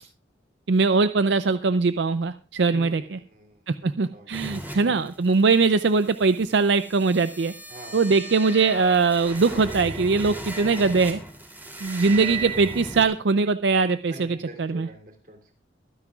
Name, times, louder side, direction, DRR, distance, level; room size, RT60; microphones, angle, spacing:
voice 1, 0.7-3.2 3.7-7.5 7.9-11.2 11.8-14.9, right 4 dB, 75° right, 12 dB, 0.5 m, -21 dB
voice 2, 2.7-3.6 4.1-4.8 7.7-8.0 14.1-15.5, right 1 dB, 50° right, 3 dB, 2.9 m, -45 dB
sound 1, 4.3-13.0, right 2 dB, 10° right, 2.9 m, -37 dB
23.5 x 9.8 x 2.4 m, 0.37 s
head